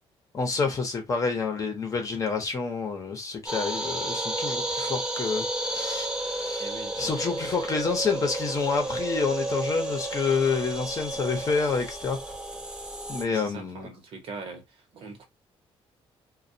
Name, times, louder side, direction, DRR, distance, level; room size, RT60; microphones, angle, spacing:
voice 1, 0.3-6.7 7.0-12.2 13.1-13.9, left 4 dB, 30° left, 0.8 m, -28 dB
sound 1, 3.5-13.2, right 1 dB, 5° right, 0.5 m, -32 dB
voice 2, 6.6-7.2 12.5-12.6 13.2-15.3, right 4 dB, 65° right, 0.9 m, -42 dB
2.3 x 2.2 x 2.6 m
cardioid pair, 135°, 10 cm